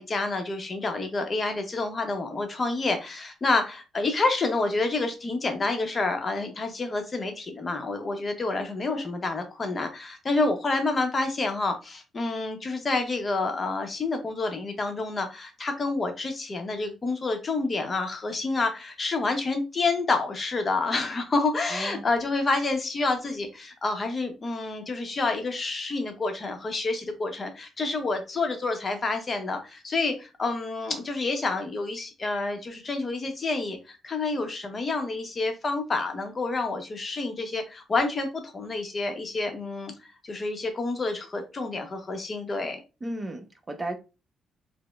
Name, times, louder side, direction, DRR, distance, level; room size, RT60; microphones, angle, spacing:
voice 1, 0.0-42.8, left 3 dB, 35° left, 0.8 m, -28 dB
voice 2, 21.7-22.0 43.0-44.0, right 1 dB, 20° right, 0.7 m, -34 dB
4.8 x 2.1 x 2.3 m
cardioid pair, 90°, 0 cm